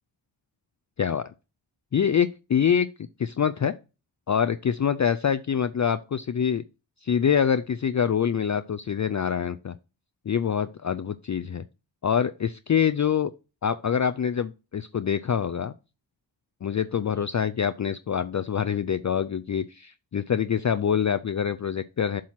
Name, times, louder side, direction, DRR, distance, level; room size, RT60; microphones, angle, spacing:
voice 1, 1.0-1.3 1.9-2.9 3.2-3.7 4.3-6.6 7.0-9.7 10.3-11.6 12.0-13.3 13.6-15.7 16.6-22.2, left 8 dB, 40° left, 0.4 m, -25 dB
7.5 x 2.9 x 5.7 m
cardioid pair, 40°, 47 cm